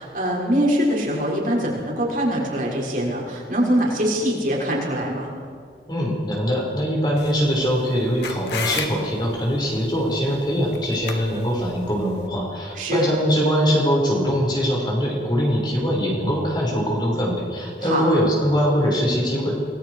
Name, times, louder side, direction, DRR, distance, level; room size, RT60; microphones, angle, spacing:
voice 1, 0.0-5.3 12.7-13.1 17.8-18.1, equal, 45° right, -3 dB, 6.5 m, -23 dB
voice 2, 5.9-19.6, equal, 25° left, -3 dB, 6.0 m, -22 dB
sound 1, 7.2-12.3, left 5 dB, 75° left, 2.5 m, -34 dB
29.0 x 21.0 x 5.1 m, 2.1 s
head